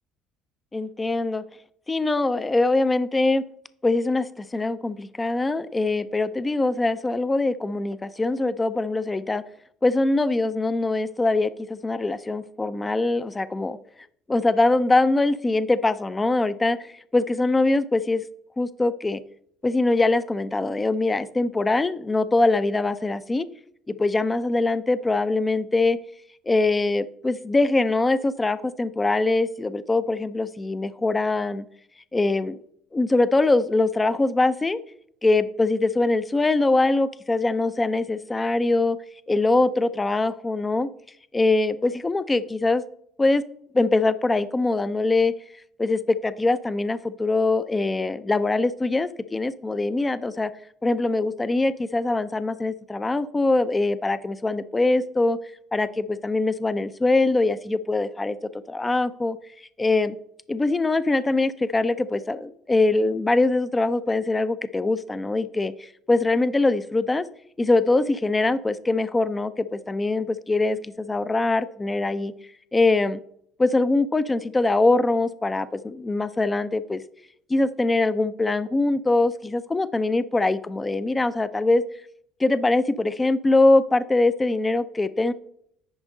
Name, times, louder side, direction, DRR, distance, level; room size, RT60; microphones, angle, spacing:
voice 1, 0.7-1.4 1.9-3.4 3.8-9.4 9.8-13.8 14.3-18.2 18.6-19.2 19.6-23.5 23.9-26.0 26.5-31.7 32.1-32.6 32.9-34.8 35.2-39.0 39.3-40.9 41.3-42.8 43.2-43.4 43.7-45.3 45.8-50.5 50.8-55.4 55.7-58.4 58.7-59.4 59.8-60.1 60.5-67.3 67.6-72.3 72.7-73.2 73.6-77.0 77.5-81.8 82.4-85.3, left 2 dB, 15° left, 14 dB, 0.4 m, -23 dB
9.8 x 5.1 x 3.8 m, 0.67 s
cardioid pair, 105°, 0 cm